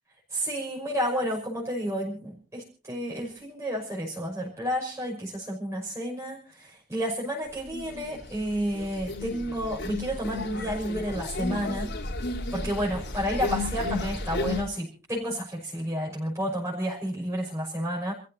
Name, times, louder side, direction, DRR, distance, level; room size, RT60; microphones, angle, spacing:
voice 1, 0.3-11.9 12.5-18.1, equal, 15° right, -3 dB, 6.0 m, -31 dB
sound 1, 7.7-8.3 8.6-14.6, left 2 dB, 65° left, 4.1 m, -33 dB
29.0 x 15.0 x 2.8 m, 0.37 s
head